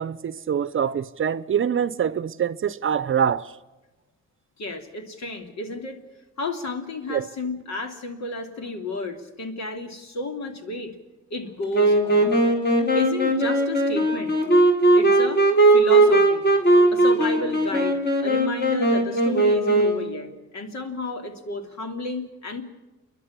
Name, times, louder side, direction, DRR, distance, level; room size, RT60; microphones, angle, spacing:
voice 1, 0.0-3.5 7.1-7.3, right 8 dB, 45° right, 0.8 m, -25 dB
voice 2, 4.6-6.0 6.4-10.9 11.3-12.4 12.9-14.3 14.9-15.4 15.7-16.5 16.9-22.6, left 2 dB, 65° left, 3.0 m, -32 dB
Wind instrument woodwind instrument, 11.7-20.1, right 2 dB, 35° left, 4.6 m, -19 dB
29.0 x 11.0 x 9.8 m
cardioid pair, 90°, 30 cm